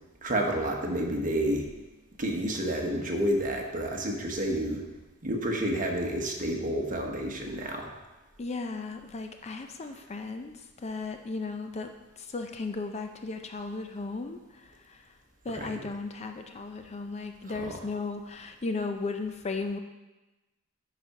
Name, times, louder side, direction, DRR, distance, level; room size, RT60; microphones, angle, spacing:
voice 1, 0.2-1.7 2.2-4.9 5.2-7.9 15.5-15.8 17.5-17.7, right 1 dB, 40° right, 1 dB, 1.2 m, -30 dB
voice 2, 8.4-15.1 15.4-19.8, left 3 dB, 30° left, 5 dB, 0.5 m, -36 dB
11.0 x 4.2 x 4.8 m, 1.1 s
head